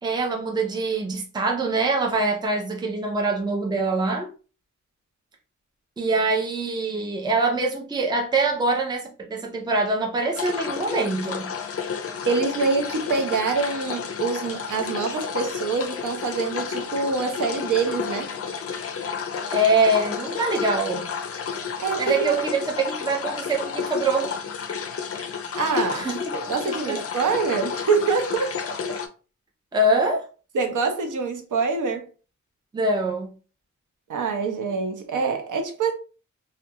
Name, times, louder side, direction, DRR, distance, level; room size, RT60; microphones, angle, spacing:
voice 1, 0.0-4.3 6.0-11.5 19.5-21.1 22.0-24.3 25.9-26.3 26.9-27.0 29.7-30.3 32.7-33.3, right 2 dB, 15° right, 0.4 m, -24 dB
sound 1, 10.3-29.1, left 6 dB, 50° left, 0.4 m, -31 dB
voice 2, 12.3-18.3 21.8-22.3 25.5-26.1 26.3-28.6 30.5-32.1 34.1-35.9, right 4 dB, 90° right, 0.6 m, -25 dB
2.3 x 2.2 x 2.7 m
wide cardioid pair, 110°, 30 cm